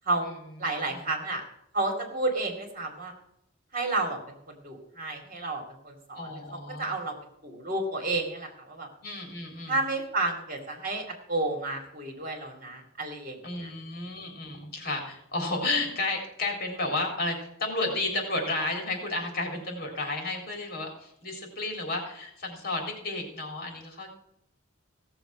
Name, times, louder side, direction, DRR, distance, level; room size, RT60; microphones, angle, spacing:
voice 1, 0.0-1.4 1.7-3.1 3.7-7.1 7.4-8.9 9.7-13.7, right 2 dB, 45° right, 3 dB, 2.6 m, -31 dB
voice 2, 6.2-6.9 9.0-9.7 13.4-24.1, left 2 dB, 50° left, 1 dB, 3.8 m, -32 dB
16.5 x 7.1 x 6.2 m, 0.76 s
head